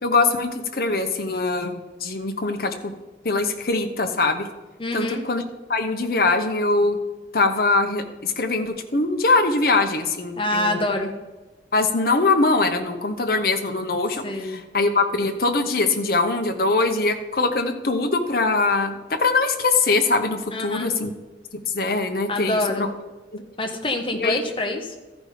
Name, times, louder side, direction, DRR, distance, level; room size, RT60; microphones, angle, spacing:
voice 1, 0.0-2.9 3.2-4.5 4.9-5.4 5.7-7.0 7.3-10.8 11.7-21.1 21.7-22.9 23.3-23.4 24.2-24.4, left 3 dB, 55° left, 6 dB, 0.9 m, -22 dB
voice 2, 4.8-5.2 10.3-11.1 14.2-14.6 20.5-20.9 22.3-22.9 23.6-24.9, left 1 dB, 30° left, 4 dB, 1.1 m, -26 dB
13.5 x 5.2 x 5.0 m, 1.2 s
head